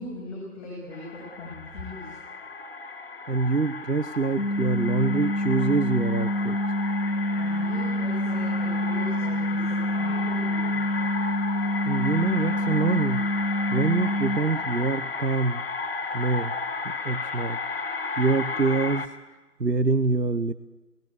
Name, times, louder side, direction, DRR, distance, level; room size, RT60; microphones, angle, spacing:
voice 1, 0.0-2.1 7.4-10.9 14.5-14.9, left 2 dB, 5° left, -12 dB, 6.0 m, -40 dB
sound 1, 0.9-19.1, left 4 dB, 35° left, 1.9 m, -34 dB
voice 2, 3.3-6.6 11.8-13.2 13.7-15.6 16.1-16.5 16.8-17.6 18.2-19.1 19.6-20.5, right 3 dB, 85° right, 13 dB, 1.1 m, -25 dB
sound 2, 4.4-14.4, left 1 dB, 90° left, 1.4 m, -27 dB
27.5 x 18.5 x 8.5 m, 1.2 s
figure-of-eight pair, 150°, 48 cm